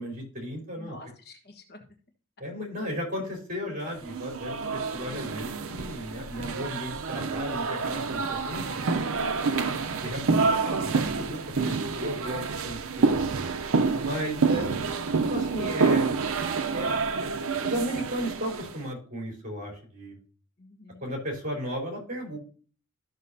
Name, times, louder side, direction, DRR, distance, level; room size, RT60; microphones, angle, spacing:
voice 1, 0.0-1.0 2.4-9.0 10.0-13.1 14.0-16.1 16.7-17.3 17.6-20.2 21.0-22.4, equal, 40° right, 1 dB, 3.8 m, -35 dB
voice 2, 0.8-1.8 9.5-9.9 20.6-21.1, left 2 dB, 50° left, 4 dB, 1.4 m, -48 dB
sound 1, 4.0-18.8, right 4 dB, 65° right, 0.6 m, -28 dB
13.5 x 6.2 x 2.7 m, 0.41 s
head